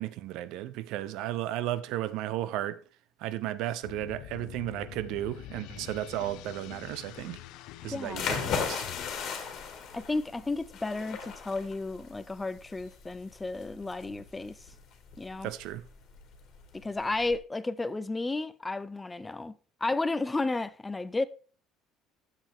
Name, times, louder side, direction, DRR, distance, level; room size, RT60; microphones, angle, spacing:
voice 1, 0.0-2.8 3.2-7.4 7.8-8.8 15.4-15.8, right 13 dB, 65° right, 0.6 m, -34 dB
sound 1, 3.8-9.1, left 14 dB, 65° left, 0.5 m, -45 dB
voice 2, 7.9-8.3 9.9-14.7 15.2-15.5 16.8-19.5 19.8-21.3, left 3 dB, 10° left, 0.3 m, -32 dB
sound 2, 8.1-17.4, left 6 dB, 45° left, 1.8 m, -37 dB
10.5 x 7.5 x 3.5 m
cardioid pair, 160°, 0 cm